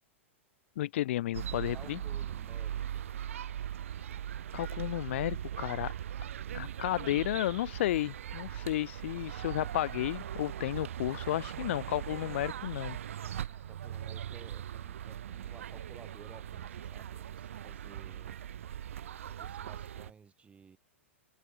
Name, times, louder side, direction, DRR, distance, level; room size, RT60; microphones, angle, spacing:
voice 1, 0.8-2.0 4.5-5.9 6.5-13.0, left 14 dB, 65° left, 0.7 m, -32 dB
sound 1, 1.3-20.1, right 10 dB, 80° right, 1.0 m, -40 dB
voice 2, 1.7-3.1 13.4-18.4 19.4-20.8, right 6 dB, 15° right, 4.0 m, -56 dB
hypercardioid pair, 120°, 7 cm